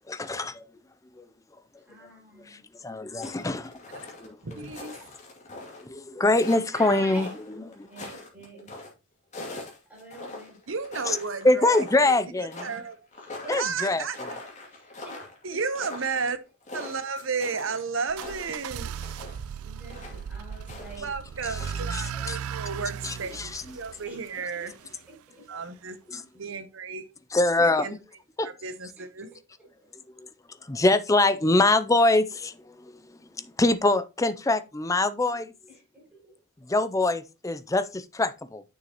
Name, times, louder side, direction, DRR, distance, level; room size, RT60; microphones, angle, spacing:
voice 1, 0.1-0.7 1.2-1.3 2.5-3.7 4.2-4.4 5.8-7.3 7.8-7.9 11.4-12.5 13.5-14.0 22.3-22.4 23.4-23.6 26.1-26.2 27.3-27.9 28.4-28.5 30.2-30.3 30.7-35.5 36.7-38.6, left 2 dB, 15° left, 0.4 m, -24 dB
voice 2, 1.8-2.7 6.7-8.8 9.5-10.6 13.2-13.6 14.7-15.6 19.6-21.1 24.0-24.4 25.1-25.5 28.6-29.4 29.8-29.9 35.7-36.4, right 1 dB, 5° right, 5.4 m, -47 dB
sound 1, 3.2-5.8 6.2-8.9 9.3-11.4 11.7-12.1 12.5-19.4 19.9-21.0 21.3-21.9, left 2 dB, 35° left, 2.6 m, -42 dB
voice 3, 4.4-5.0 10.7-13.1 13.5-14.4 15.4-16.4 16.7-18.9 21.0-24.7 25.5-26.0 26.3-27.1 27.6-28.0 28.4-29.3, right 5 dB, 65° right, 0.9 m, -33 dB
sound 2, 18.1-25.0, right 7 dB, 90° right, 0.4 m, -37 dB
9.4 x 6.6 x 3.0 m
head